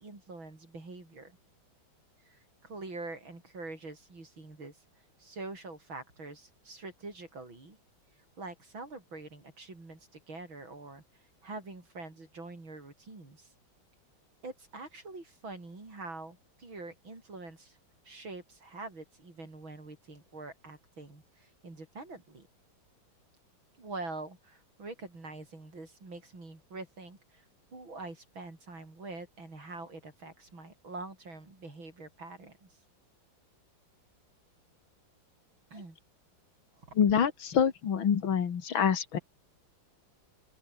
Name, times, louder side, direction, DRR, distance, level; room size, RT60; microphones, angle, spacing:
voice 1, 0.0-1.4 2.3-4.8 5.2-7.8 8.4-11.0 11.4-13.5 14.4-17.8 18.1-22.5 23.8-27.4 27.7-32.7 35.7-36.0 36.9-37.0, right 3 dB, 85° right, 7.3 m, -45 dB
voice 2, 37.0-39.2, left 7 dB, 85° left, 2.6 m, -26 dB
open air
omnidirectional pair, 2.1 m